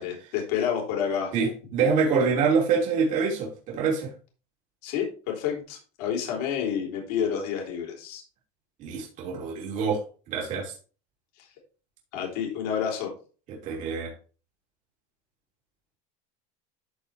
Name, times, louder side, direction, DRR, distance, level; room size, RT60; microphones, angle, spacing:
voice 1, 0.0-1.3 4.8-8.2 12.1-13.1, left 8 dB, 75° left, 0 dB, 3.4 m, -29 dB
voice 2, 1.3-4.1 8.8-10.0 10.3-10.7 13.6-14.1, right 5 dB, 40° right, -3 dB, 3.0 m, -25 dB
13.5 x 4.6 x 3.3 m, 0.36 s
cardioid pair, 170°, 20 cm